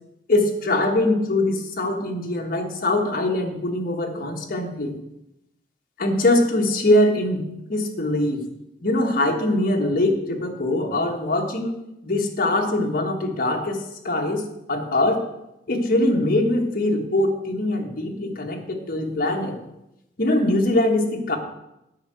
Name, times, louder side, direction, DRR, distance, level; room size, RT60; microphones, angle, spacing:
voice 1, 0.3-5.0 6.0-7.4 7.7-8.5 8.8-11.7 12.0-15.2 15.7-19.6 20.2-21.4, left 1 dB, 55° left, 2 dB, 1.4 m, -22 dB
8.3 x 5.6 x 7.6 m, 0.88 s
head